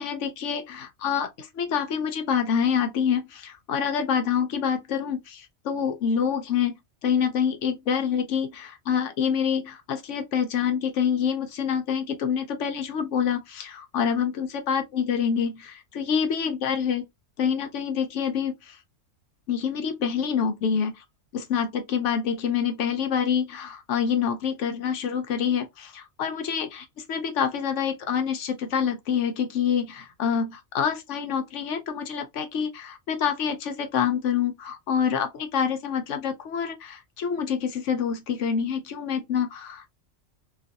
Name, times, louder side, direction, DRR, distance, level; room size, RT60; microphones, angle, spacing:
voice 1, 0.0-17.0 17.4-18.8 19.5-21.0 21.3-39.9, left 7 dB, 75° left, 0.9 m, -27 dB
2.5 x 2.5 x 2.5 m
omnidirectional pair, 1.3 m